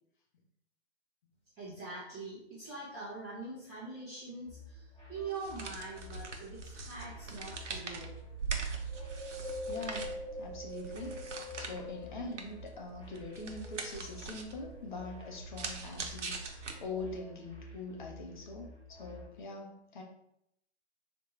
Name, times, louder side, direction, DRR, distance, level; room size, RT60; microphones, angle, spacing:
voice 1, 1.6-8.1, right 3 dB, 10° right, -13 dB, 0.6 m, -43 dB
sound 1, 4.5-19.3, left 1 dB, 15° left, 0.9 m, -52 dB
sound 2, 5.3-17.2, right 5 dB, 85° right, 0.8 m, -42 dB
Wind, 8.9-12.5 13.0-14.2 14.8-14.9, left 2 dB, 55° right, 0.8 m, -44 dB
voice 2, 9.7-11.2 11.6-20.0, left 3 dB, 45° left, 2 dB, 0.6 m, -43 dB
4.1 x 2.5 x 3.1 m, 0.77 s
hypercardioid pair, 150°, 35 cm